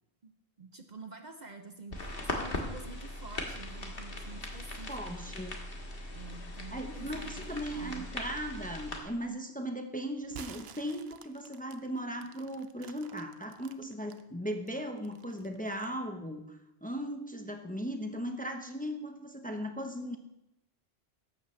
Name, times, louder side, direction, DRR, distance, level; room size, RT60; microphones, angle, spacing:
voice 1, 0.6-5.2 6.1-8.0, right 3 dB, 50° right, 6 dB, 0.8 m, -48 dB
sound 1, 1.9-9.0, left 1 dB, 60° left, 1.9 m, -39 dB
voice 2, 4.9-5.6 6.7-20.2, equal, 10° left, 4 dB, 0.8 m, -38 dB
sound 2, 10.2-14.2 14.7-16.0, right 8 dB, 75° right, 0.9 m, -51 dB
14.5 x 11.5 x 3.2 m, 0.88 s
omnidirectional pair, 1.1 m